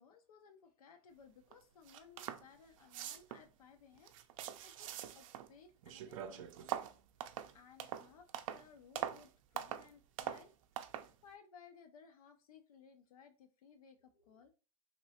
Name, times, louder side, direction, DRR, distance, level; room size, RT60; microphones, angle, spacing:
voice 1, 0.0-4.1 4.6-6.7 7.5-10.5 10.8-14.5, left 6 dB, 90° left, 6 dB, 0.6 m, -61 dB
sound 1, 1.5-1.6 1.9-2.5 2.8-3.5 4.0-5.5 5.8-8.7 9.0-9.3 9.6-9.9 10.2-10.5 10.8-11.1, right 11 dB, 65° right, 0.4 m, -43 dB
3.0 x 2.9 x 2.8 m, 0.33 s
hypercardioid pair, 130°, 18 cm